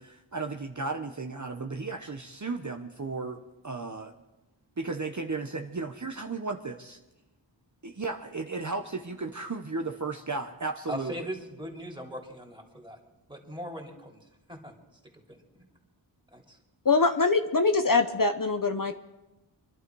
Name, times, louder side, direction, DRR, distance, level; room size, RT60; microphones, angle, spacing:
voice 1, 0.0-4.1 4.8-7.0 7.8-11.1, right 3 dB, 40° right, 4 dB, 1.0 m, -34 dB
voice 2, 10.9-13.0 13.3-14.7 15.1-15.6 16.3-16.6, equal, 10° right, 0 dB, 3.2 m, -40 dB
voice 3, 16.8-18.9, left 4 dB, 45° left, 7 dB, 0.9 m, -23 dB
25.0 x 11.5 x 4.7 m, 0.99 s
wide cardioid pair, 65°, 45 cm